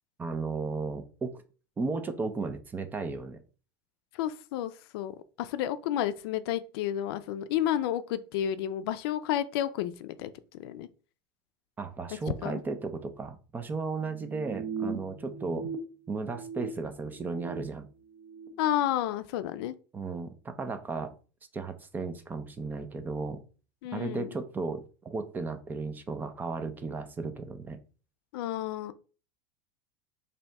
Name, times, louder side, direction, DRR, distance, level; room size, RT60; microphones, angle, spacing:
voice 1, 0.2-1.3 1.8-3.4 11.8-15.7 16.1-17.9 19.9-21.1 21.5-23.4 23.9-27.8, right 4 dB, 15° right, 0.4 m, -35 dB
voice 2, 4.1-10.9 12.4-12.6 18.6-19.7 23.8-24.3 28.3-28.9, left 11 dB, 75° left, 0.4 m, -31 dB
sound 1, 14.0-15.8 16.1-17.7 18.1-18.5, right 5 dB, 70° right, 0.8 m, -39 dB
4.0 x 2.7 x 3.3 m
supercardioid pair, 155°, 13 cm